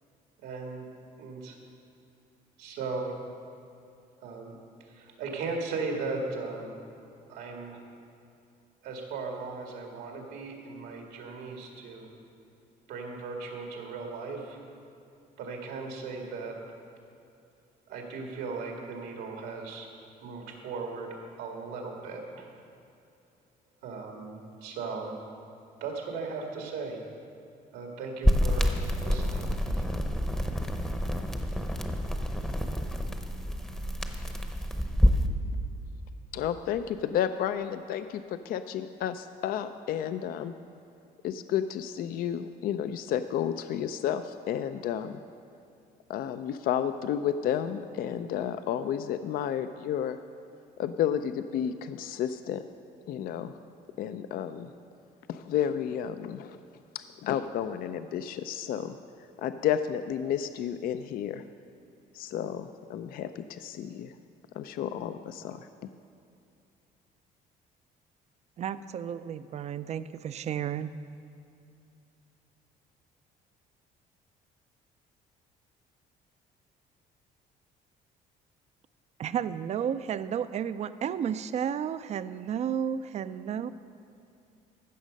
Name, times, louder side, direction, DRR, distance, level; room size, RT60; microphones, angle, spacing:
voice 1, 0.4-0.8 1.2-1.6 2.6-3.1 4.2-4.5 4.8-6.7 7.3-7.8 8.8-12.1 12.9-14.6 15.4-16.5 17.9-19.9 20.2-22.5 23.8-25.2 25.8-27.0 27.7-28.7 29.0-29.8, right 4 dB, 85° right, 1 dB, 1.9 m, -37 dB
sound 1, 28.2-35.3, equal, 5° left, 0.7 m, -28 dB
voice 2, 36.3-40.5 41.2-45.2 46.1-50.2 50.8-52.6 53.1-53.5 54.0-54.7 55.3-56.6 56.9-59.0 59.4-61.4 62.1-64.1 64.5-65.9, left 9 dB, 60° left, 10 dB, 0.4 m, -31 dB
voice 3, 68.6-70.9 79.2-83.7, right 8 dB, 40° right, 14 dB, 0.4 m, -32 dB
15.0 x 6.4 x 5.2 m, 2.5 s
cardioid pair, 110°, 17 cm